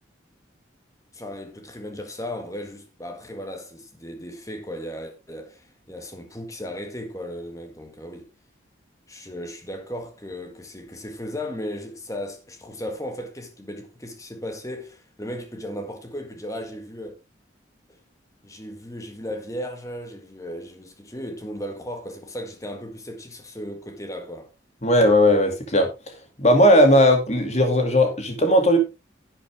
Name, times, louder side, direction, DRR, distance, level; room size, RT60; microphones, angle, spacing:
voice 1, 1.1-8.3 9.1-17.1 17.9-18.0 18.4-24.5, equal, 15° left, 1.7 m, -36 dB
voice 2, 24.8-25.9 26.4-28.8, left 1 dB, 35° left, 2.4 m, -17 dB
11.0 x 8.6 x 3.5 m
head